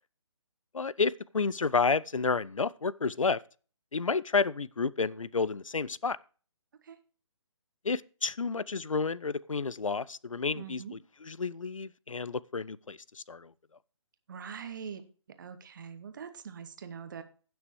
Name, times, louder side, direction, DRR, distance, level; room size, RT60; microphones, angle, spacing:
voice 1, 0.7-3.4 3.9-6.2 7.8-13.5, left 4 dB, 80° left, 0.4 m, -30 dB
voice 2, 10.5-10.9 14.3-15.0 15.4-17.2, right 7 dB, 40° right, 1.0 m, -43 dB
16.5 x 6.2 x 3.1 m
figure-of-eight pair, 140°, 16 cm